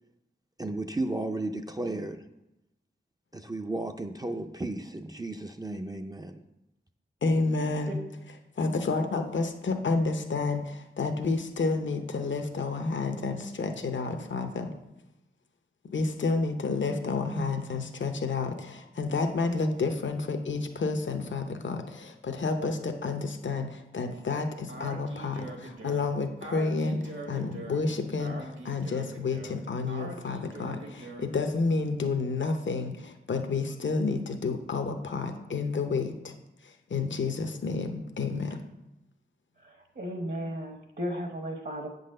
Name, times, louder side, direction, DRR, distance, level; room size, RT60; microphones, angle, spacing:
voice 1, 0.6-2.2 3.3-6.4, right 2 dB, 20° right, 5 dB, 0.4 m, -34 dB
voice 2, 7.2-8.0 8.5-14.7 15.9-36.3 36.6-38.6, left 4 dB, 65° left, 6 dB, 0.7 m, -30 dB
Speech, 24.7-31.4, right 2 dB, 70° right, 1.4 m, -42 dB
voice 3, 39.6-41.9, equal, 55° right, 4 dB, 1.0 m, -35 dB
8.4 x 4.0 x 6.5 m, 0.91 s
wide cardioid pair, 90°, 20 cm